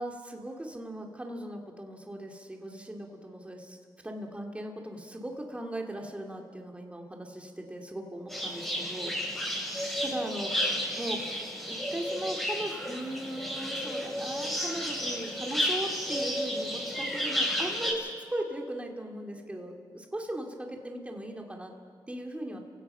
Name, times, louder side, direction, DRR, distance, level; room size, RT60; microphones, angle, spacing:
voice 1, 0.0-9.7 10.0-10.5 10.9-11.2 11.7-21.7 22.1-22.6, right 1 dB, 15° right, 2 dB, 2.7 m, -38 dB
sound 1, 8.3-17.9, equal, 5° left, 7.2 m, -32 dB
29.5 x 17.0 x 5.8 m, 2.2 s
cardioid pair, 70°, 8 cm